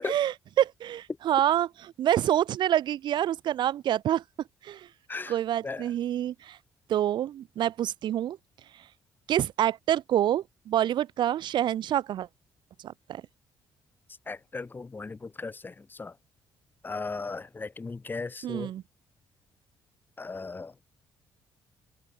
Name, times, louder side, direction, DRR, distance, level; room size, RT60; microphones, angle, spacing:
voice 1, 0.0-4.2 4.6-4.9 5.3-6.6 6.9-8.4 9.3-12.3 12.8-13.2 18.4-18.8, right 11 dB, 70° right, 5.5 m, -27 dB
voice 2, 14.3-15.7 16.0-16.1 16.8-18.7 20.2-20.8, left 3 dB, 25° left, 5.3 m, -36 dB
cardioid pair, 105°, 8 cm